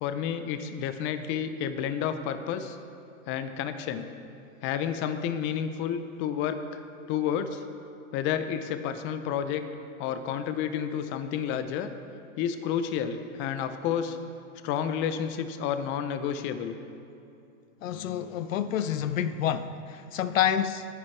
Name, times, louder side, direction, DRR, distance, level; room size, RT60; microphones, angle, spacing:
voice 1, 0.0-2.8 3.3-4.0 4.6-6.6 7.1-7.6 8.1-9.6 10.0-11.9 12.4-14.2 14.6-16.7, left 8 dB, 30° left, 10 dB, 0.7 m, -30 dB
voice 2, 17.8-20.9, left 9 dB, 70° left, 13 dB, 0.7 m, -28 dB
21.0 x 9.9 x 3.3 m, 2.6 s
hypercardioid pair, 130°, 41 cm